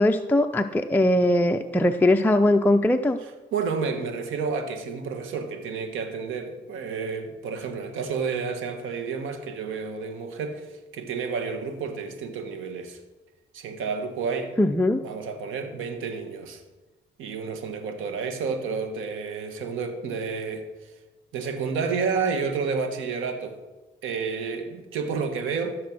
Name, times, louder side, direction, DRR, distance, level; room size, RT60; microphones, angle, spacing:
voice 1, 0.0-3.2 14.6-15.0, left 1 dB, 10° left, 5 dB, 0.5 m, -20 dB
voice 2, 3.2-13.0 13.5-14.5 15.0-16.6 17.2-20.9 21.3-23.6 24.0-25.8, right 5 dB, 85° right, 7 dB, 1.5 m, -30 dB
14.5 x 6.6 x 6.1 m, 1.1 s
cardioid pair, 90°, 20 cm